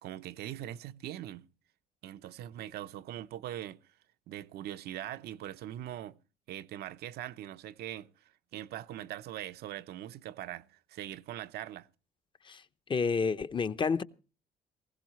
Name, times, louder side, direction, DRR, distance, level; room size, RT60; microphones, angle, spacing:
voice 1, 0.0-1.5 2.0-3.8 4.3-6.2 6.5-11.9, right 12 dB, 70° right, 0.8 m, -42 dB
voice 2, 12.9-14.0, left 5 dB, 30° left, 0.8 m, -29 dB
20.0 x 16.0 x 3.1 m
cardioid pair, 110°, 17 cm